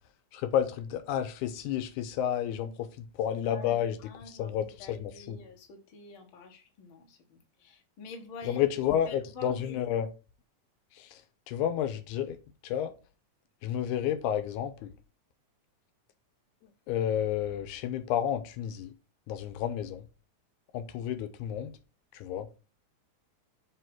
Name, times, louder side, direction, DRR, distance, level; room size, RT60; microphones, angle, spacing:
voice 1, 0.3-4.0 4.3-5.4 8.4-10.1 11.0-11.2 11.5-12.4 12.6-12.9 13.6-14.9 16.9-18.9 19.3-20.0 20.7-21.7 22.1-22.5, left 10 dB, 85° left, 2.1 m, -31 dB
voice 2, 3.4-9.8, left 3 dB, 55° left, 1.7 m, -47 dB
7.9 x 2.8 x 6.0 m
omnidirectional pair, 3.5 m